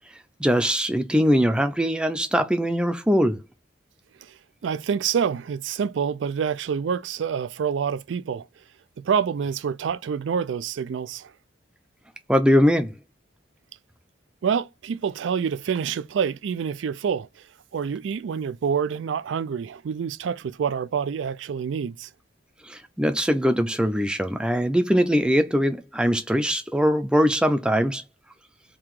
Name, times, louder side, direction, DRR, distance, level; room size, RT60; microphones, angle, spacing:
voice 1, 0.4-3.4 12.3-12.9 22.6-28.0, equal, 5° right, 0.5 m, -21 dB
voice 2, 4.2-8.5 9.0-11.3 14.4-17.4 17.7-22.1, right 7 dB, 85° right, 0.4 m, -27 dB
3.8 x 2.8 x 4.7 m
head